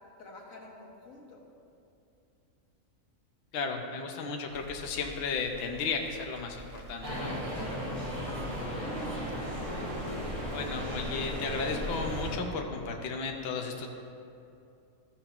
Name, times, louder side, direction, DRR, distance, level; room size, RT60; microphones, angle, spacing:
voice 1, 0.2-1.4 7.5-7.9 8.2-9.4, left 3 dB, 85° left, -1 dB, 1.7 m, -47 dB
voice 2, 3.5-7.4 10.5-13.9, left 4 dB, 55° left, 2 dB, 0.9 m, -34 dB
Crackle, 4.5-12.3, left 1 dB, 30° right, 1.5 m, -46 dB
sound 1, 7.0-12.4, equal, 65° right, 2.5 m, -35 dB
14.0 x 7.0 x 3.0 m, 2.6 s
omnidirectional pair, 1.4 m